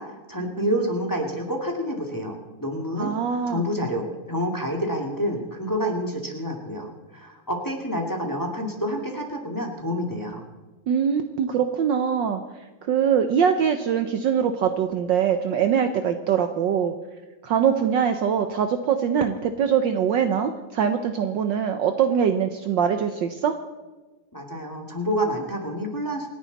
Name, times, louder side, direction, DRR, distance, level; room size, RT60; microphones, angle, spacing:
voice 1, 0.0-10.4 24.3-26.3, equal, 10° left, 1 dB, 2.1 m, -28 dB
voice 2, 3.0-3.7 10.9-12.4 12.8-16.9 17.4-23.5, right 7 dB, 65° right, 8 dB, 1.3 m, -23 dB
27.5 x 10.0 x 4.1 m, 1.2 s
omnidirectional pair, 2.4 m